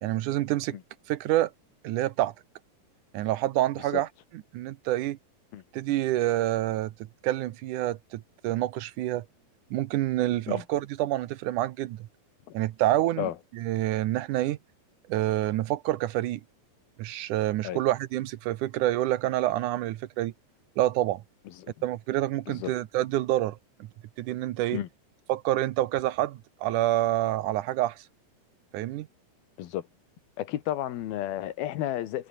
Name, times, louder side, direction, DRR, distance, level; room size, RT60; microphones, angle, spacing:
voice 1, 0.0-0.8 1.1-1.5 1.8-2.3 3.1-5.2 5.7-6.9 7.2-9.3 9.7-12.1 12.5-14.6 15.1-16.4 17.0-20.3 20.8-21.2 21.8-23.6 24.2-24.8 25.3-28.0 28.7-29.1, right 14 dB, 70° right, 2.0 m, -27 dB
voice 2, 30.4-32.3, left 13 dB, 80° left, 3.3 m, -32 dB
omnidirectional pair, 4.3 m